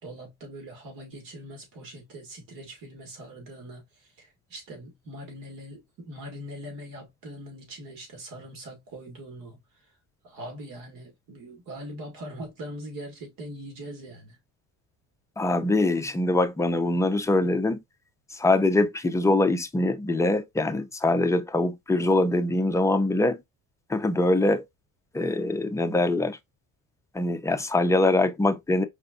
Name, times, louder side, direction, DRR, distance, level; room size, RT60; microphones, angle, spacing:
voice 1, 0.0-3.8 4.2-9.6 10.2-14.4, equal, 70° right, 2.1 m, -41 dB
voice 2, 15.4-17.8 18.3-23.4 23.9-24.6 25.1-26.4 27.1-28.8, left 2 dB, 10° left, 0.4 m, -23 dB
4.9 x 3.4 x 2.5 m
cardioid pair, 130°, 36 cm